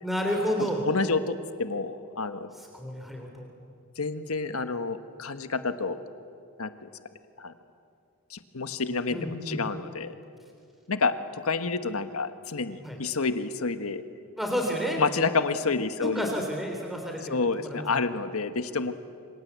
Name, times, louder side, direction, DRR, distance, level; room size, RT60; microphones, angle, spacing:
voice 1, 0.0-0.8 2.5-3.5 9.1-9.6 12.8-13.0 14.4-15.0 15.9-18.1, equal, ahead, 1 dB, 3.5 m, -31 dB
voice 2, 0.9-2.5 4.0-6.0 6.6-6.9 7.4-7.5 8.3-10.2 10.9-11.1 11.4-14.0 15.0-16.3 17.3-19.0, left 4 dB, 75° left, 10 dB, 1.4 m, -29 dB
27.5 x 25.5 x 8.3 m, 2.5 s
head